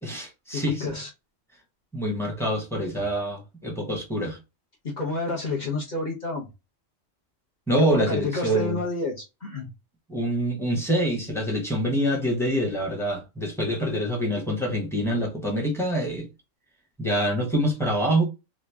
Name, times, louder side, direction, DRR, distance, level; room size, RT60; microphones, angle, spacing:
voice 1, 0.0-0.8 1.9-4.4 7.7-8.8 10.1-16.3 17.0-18.2, equal, ahead, 0.9 m, -25 dB
voice 2, 0.5-1.1 4.8-6.5 7.8-9.7, left 3 dB, 40° left, 0.9 m, -29 dB
3.1 x 2.3 x 3.4 m
omnidirectional pair, 1.3 m